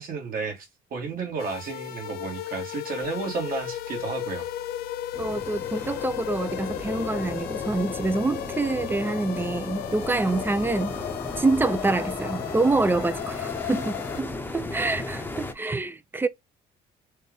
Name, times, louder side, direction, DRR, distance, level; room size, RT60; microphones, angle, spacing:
voice 1, 0.0-4.5, right 4 dB, 55° right, 2.0 m, -32 dB
sound 1, 1.4-14.2, left 13 dB, 65° left, 0.4 m, -35 dB
sound 2, 3.0-10.4, right 1 dB, 80° right, 1.8 m, -49 dB
sound 3, 5.1-15.5, left 2 dB, 10° left, 0.9 m, -36 dB
voice 2, 5.2-10.9 11.4-16.3, right 3 dB, 10° right, 0.5 m, -26 dB
4.3 x 2.5 x 3.5 m
cardioid pair, 110°, 17 cm